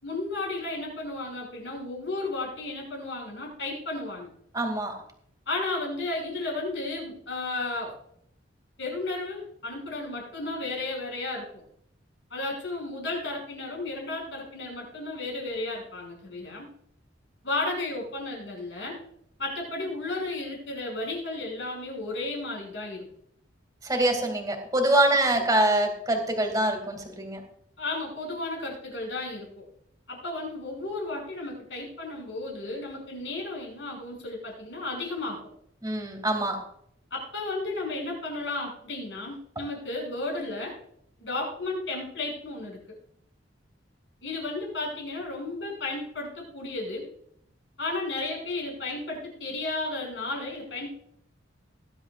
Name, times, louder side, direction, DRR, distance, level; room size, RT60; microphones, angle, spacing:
voice 1, 0.0-4.3 5.5-7.9 8.8-11.6 12.3-16.7 17.4-19.0 19.4-23.0 27.8-29.6 30.1-35.4 37.1-40.7 41.2-42.8 44.2-47.1 47.8-50.9, left 2 dB, 70° left, -1 dB, 6.1 m, -33 dB
voice 2, 4.5-5.0 23.8-27.4 35.8-36.6, right 1 dB, 20° right, 3 dB, 2.4 m, -24 dB
20.0 x 10.5 x 2.5 m, 0.71 s
head